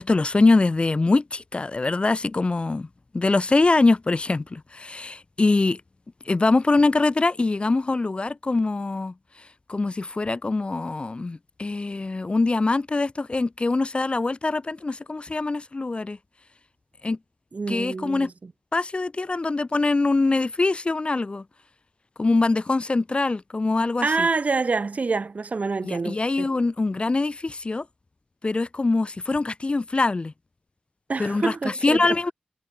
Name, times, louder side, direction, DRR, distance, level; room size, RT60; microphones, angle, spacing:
voice 1, 0.0-2.9 3.1-5.8 6.2-16.2 17.0-17.2 17.7-18.3 18.7-21.4 22.2-24.3 25.8-27.8 28.4-30.3 31.2-32.3, left 3 dB, 40° left, 1.4 m, -23 dB
voice 2, 17.5-18.3 24.0-26.5 31.1-32.0, right 4 dB, 55° right, 5.8 m, -26 dB
wide cardioid pair, 75°, 3 cm